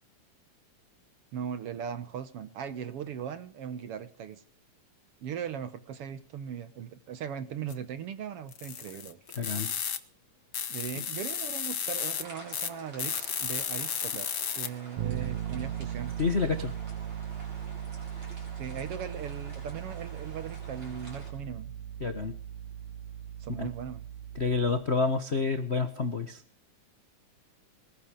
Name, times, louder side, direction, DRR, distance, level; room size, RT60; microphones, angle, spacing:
voice 1, 1.3-4.4 5.2-9.2 10.7-16.1 18.6-21.7 23.4-24.1, right 8 dB, 60° right, 1.8 m, -39 dB
sound 1, 7.7-7.8 8.5-10.0 10.5-12.2 12.5-12.7 13.0-14.7, left 8 dB, 55° left, 1.2 m, -33 dB
voice 2, 9.4-9.7 16.2-16.7 22.0-22.3 23.6-23.7 24.4-26.4, left 4 dB, 75° left, 0.6 m, -28 dB
sound 2, 11.9-21.3, right 1 dB, 40° right, 7.9 m, -50 dB
Bass guitar, 15.0-24.8, right 10 dB, 85° right, 2.8 m, -38 dB
21.0 x 13.5 x 5.2 m
omnidirectional pair, 3.4 m